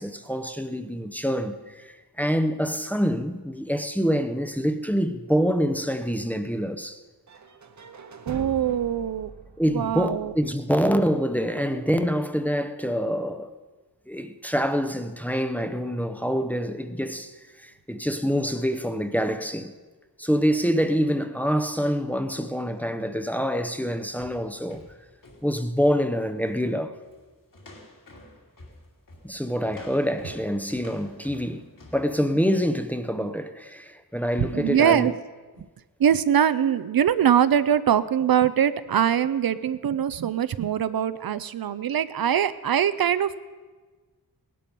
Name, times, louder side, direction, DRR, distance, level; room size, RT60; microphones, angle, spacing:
voice 1, 0.0-7.0 9.6-13.5 14.1-19.7 20.2-24.8 25.4-27.0 29.2-31.6 31.9-35.1, equal, 5° left, 0.7 m, -26 dB
sound 1, 7.3-11.2, right 5 dB, 45° right, 0.9 m, -43 dB
voice 2, 8.3-9.3 9.7-10.3 34.4-35.2 36.0-43.4, right 9 dB, 65° right, 0.6 m, -22 dB
sound 2, 24.1-26.1 26.4-26.7 27.0-27.3 27.5-32.1, left 1 dB, 55° left, 2.9 m, -49 dB
18.0 x 12.0 x 5.4 m
wide cardioid pair, 150°, 39 cm